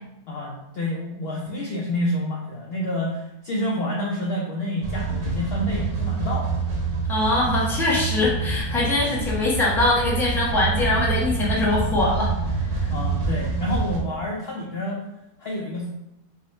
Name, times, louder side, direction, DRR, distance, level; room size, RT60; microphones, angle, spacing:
voice 1, 0.3-6.5 12.9-15.0 15.4-15.9, left 1 dB, 80° left, -2 dB, 0.5 m, -28 dB
sound 1, 4.8-14.0, right 4 dB, 50° right, 0.9 m, -26 dB
voice 2, 7.1-12.3 12.8-12.9, left 2 dB, 5° left, -6 dB, 0.4 m, -22 dB
3.7 x 2.1 x 3.9 m, 0.87 s
omnidirectional pair, 1.7 m